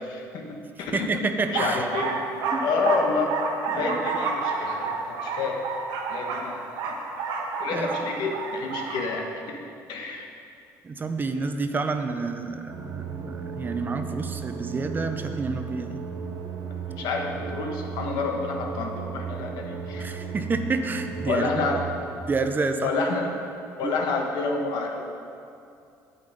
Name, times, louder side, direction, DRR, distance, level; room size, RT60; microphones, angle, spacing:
voice 1, 0.0-1.1 1.5-2.2 2.5-3.4 3.7-5.6 6.1-7.0 7.6-9.6 9.9-10.3 17.0-20.1 21.3-21.8 22.8-23.3 23.8-25.2, left 4 dB, 75° left, 1 dB, 1.5 m, -29 dB
voice 2, 0.9-1.8 2.5-2.6 3.7-4.0 7.7-7.9 10.8-16.0 20.0-21.7 22.3-22.9 23.8-23.9, right 4 dB, 25° right, 7 dB, 0.7 m, -29 dB
sound 1, 1.4-9.0, right 4 dB, 90° right, 1.2 m, -30 dB
sound 2, 12.7-22.1, right 6 dB, 65° right, 1.6 m, -35 dB
9.6 x 8.8 x 5.2 m, 2.6 s
cardioid pair, 115°, 7 cm